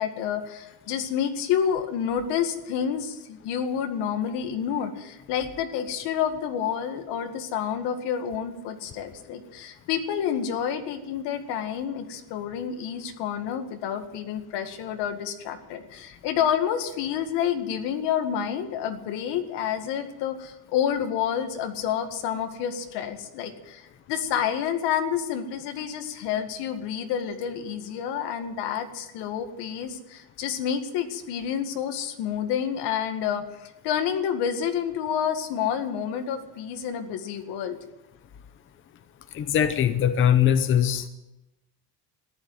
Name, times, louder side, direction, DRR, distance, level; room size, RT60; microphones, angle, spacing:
voice 1, 0.0-37.8, left 8 dB, 80° left, 7 dB, 2.0 m, -29 dB
voice 2, 39.3-41.1, left 9 dB, 30° left, 10 dB, 0.8 m, -21 dB
14.5 x 11.0 x 9.1 m, 0.96 s
cardioid pair, 180°, 40 cm